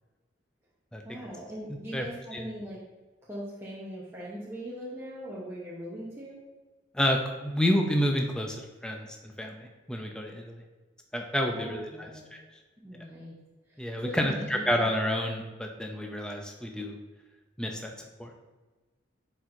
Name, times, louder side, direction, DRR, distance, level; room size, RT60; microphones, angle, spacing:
voice 1, 1.0-2.8 3.2-6.4 11.5-12.2 12.8-13.3 13.7-14.9, equal, 15° right, -7 dB, 0.8 m, -40 dB
voice 2, 6.9-8.6 8.8-10.6 11.1-12.4 13.8-17.0 17.6-17.9 18.2-18.3, equal, 5° left, 2 dB, 0.4 m, -29 dB
9.8 x 4.4 x 2.6 m, 1.2 s
head